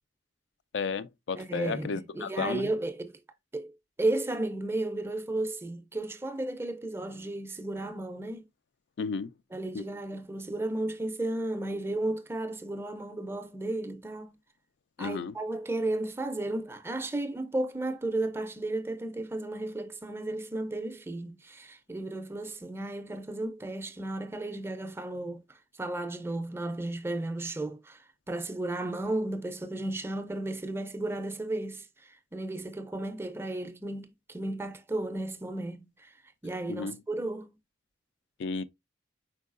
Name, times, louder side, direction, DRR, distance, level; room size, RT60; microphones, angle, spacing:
voice 1, 0.7-2.7 9.0-9.3 9.7-9.8 15.0-15.4 36.7-37.0 38.4-38.6, left 5 dB, 65° left, 0.3 m, -33 dB
voice 2, 1.4-3.2 3.5-3.7 4.0-8.4 9.5-14.3 15.0-25.4 25.8-28.0 28.3-31.9 32.3-36.1 36.4-37.5, right 2 dB, 15° right, 0.4 m, -34 dB
4.6 x 4.5 x 2.4 m
head